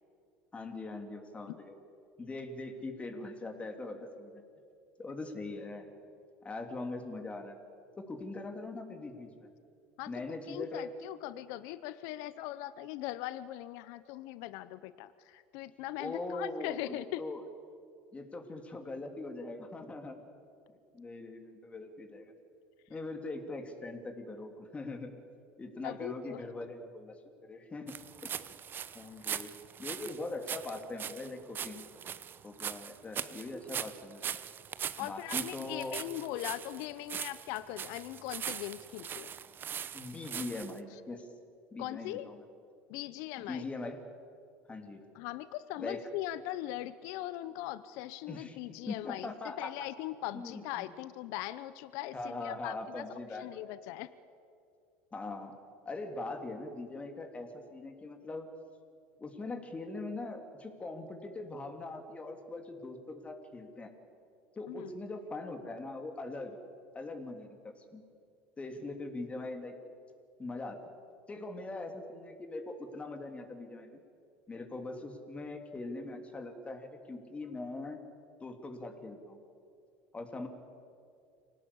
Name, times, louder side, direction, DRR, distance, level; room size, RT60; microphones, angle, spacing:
voice 1, 0.5-1.8 2.2-4.4 5.0-5.9 6.4-7.6 8.0-9.5 10.1-10.9 16.0-17.4 18.1-20.2 20.9-22.3 22.9-25.1 25.6-27.2 27.4-27.9 28.2-28.3 28.9-29.5 29.8-31.9 32.4-34.2 35.0-36.0 39.9-41.3 41.7-42.4 43.4-44.0 44.7-45.0 45.8-46.0 48.3-48.6 48.9-49.9 50.3-50.9 52.1-53.6 55.1-55.6 55.8-58.5 59.2-63.9 64.5-66.6 66.9-68.0 68.6-69.7 70.4-70.8 71.3-74.0 74.5-78.0 78.4-79.4 80.1-80.5, left 2 dB, 20° left, 5 dB, 3.1 m, -41 dB
voice 2, 10.5-17.2 25.8-26.4 35.0-39.3 41.8-42.3 42.9-43.6 45.1-49.3 49.6-53.0 53.4-54.1 64.7-64.9, left 15 dB, 65° left, 15 dB, 0.7 m, -40 dB
sound 1, 27.9-40.8, right 8 dB, 35° right, 1.0 m, -41 dB
24.5 x 18.0 x 8.6 m, 2.4 s
hypercardioid pair, 90°, 6 cm